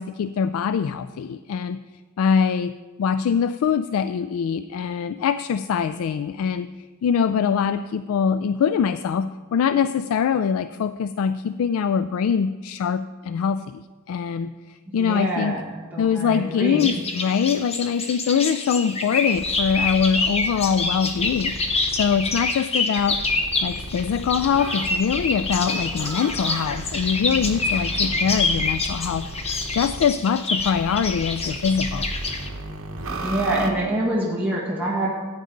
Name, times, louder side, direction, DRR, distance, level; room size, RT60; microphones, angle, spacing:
voice 1, 0.0-1.8 2.2-2.7 3.0-15.6 16.0-23.2 23.6-29.3 29.7-32.1, left 7 dB, 75° left, 12 dB, 0.3 m, -23 dB
voice 2, 14.9-16.9 33.1-35.1, right 1 dB, 10° right, -5 dB, 1.5 m, -26 dB
sound 1, 16.8-32.5, left 3 dB, 30° left, 0.9 m, -27 dB
sound 2, 19.3-22.4 23.0-30.1 30.6-33.7, right 1 dB, 70° right, 1.1 m, -35 dB
14.5 x 8.9 x 3.8 m, 1.4 s
head